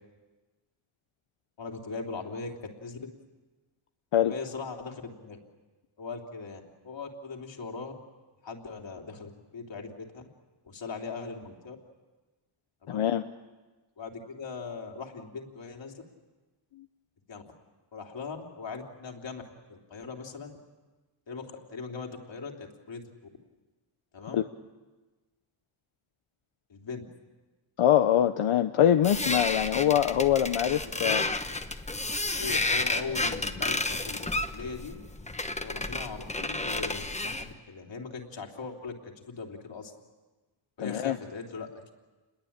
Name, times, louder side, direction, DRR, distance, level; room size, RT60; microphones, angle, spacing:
voice 1, 1.6-3.0 4.3-5.4 6.0-7.9 8.4-10.2 10.7-11.8 12.8-13.0 14.0-15.9 17.3-17.4 17.9-19.4 19.7-20.5 21.3-23.0 24.1-24.4 26.7-27.1 30.8-31.2 31.5-31.6 32.3-35.0 35.6-39.9 40.8-41.9, left 4 dB, 60° left, 2 dB, 3.5 m, -40 dB
voice 2, 12.9-13.2 24.3-24.4 27.8-31.2 40.8-41.2, left 10 dB, 90° left, 8 dB, 0.9 m, -24 dB
sound 1, 29.0-37.5, left 2 dB, 15° left, 1.2 m, -31 dB
29.5 x 21.5 x 8.8 m, 1.2 s
wide cardioid pair, 150°, 49 cm